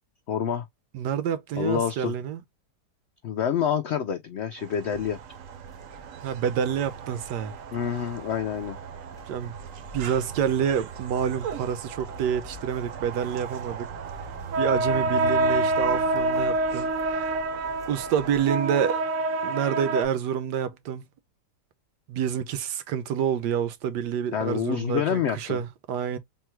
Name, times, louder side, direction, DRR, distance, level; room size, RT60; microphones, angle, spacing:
voice 1, 0.3-0.7 1.6-2.1 3.2-5.2 7.7-8.8 24.3-25.6, left 8 dB, 85° left, 0.5 m, -27 dB
voice 2, 0.9-2.4 6.2-7.5 9.3-9.6 9.9-13.9 14.5-17.5 17.9-19.0 19.4-21.1 22.1-26.2, right 8 dB, 85° right, 1.3 m, -28 dB
sound 1, 4.6-20.0, right 2 dB, 65° right, 0.9 m, -30 dB
sound 2, 4.9-18.5, left 3 dB, 5° left, 0.6 m, -49 dB
3.6 x 2.2 x 4.4 m
omnidirectional pair, 1.8 m